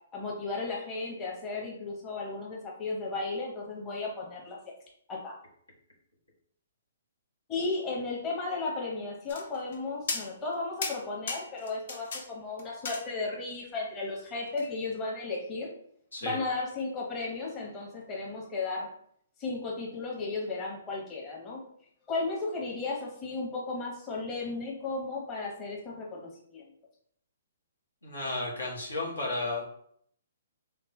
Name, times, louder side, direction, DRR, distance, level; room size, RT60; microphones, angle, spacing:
voice 1, 0.1-4.6 5.1-5.3 7.5-15.7 16.2-18.9 19.4-21.6 22.1-26.6, left 3 dB, 20° left, -3 dB, 1.0 m, -34 dB
sound 1, 9.3-9.8 10.1-10.5 10.8-12.2 12.6-13.5 14.6-14.7, left 4 dB, 55° left, 0.7 m, -36 dB
voice 2, 28.0-29.6, left 2 dB, 90° left, -4 dB, 1.4 m, -33 dB
3.4 x 3.2 x 3.0 m, 0.66 s
figure-of-eight pair, 130°, 0 cm